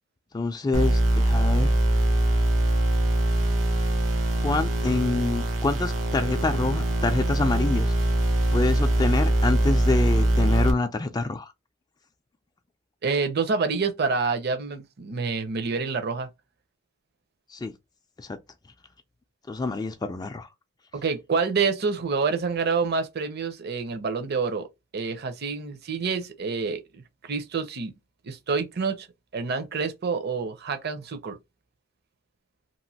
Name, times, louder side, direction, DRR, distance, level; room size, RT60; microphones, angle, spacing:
voice 1, 0.3-1.7 4.4-7.9 8.5-11.5 17.5-17.7 18.2-18.4 19.5-20.5, left 3 dB, 20° left, 0.3 m, -27 dB
sound 1, 0.7-10.7, right 1 dB, 85° right, 0.8 m, -23 dB
voice 2, 13.0-16.3 20.9-24.7 24.9-27.9 28.2-29.1 29.3-31.4, right 4 dB, 55° right, 0.6 m, -27 dB
3.0 x 2.5 x 2.7 m
head